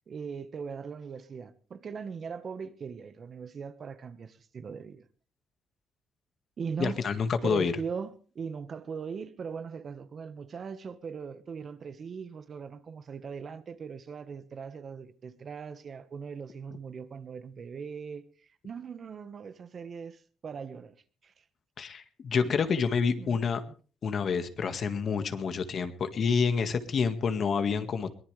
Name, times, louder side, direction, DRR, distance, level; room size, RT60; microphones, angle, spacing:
voice 1, 0.1-5.1 6.6-7.0 7.4-20.9 21.2-21.4 23.2-23.4 25.3-25.4, right 6 dB, 50° right, 1.4 m, -40 dB
voice 2, 6.8-7.7 21.8-23.6 24.0-28.1, left 5 dB, 55° left, 1.8 m, -28 dB
22.5 x 18.0 x 3.4 m
cardioid pair, 90°, 0 cm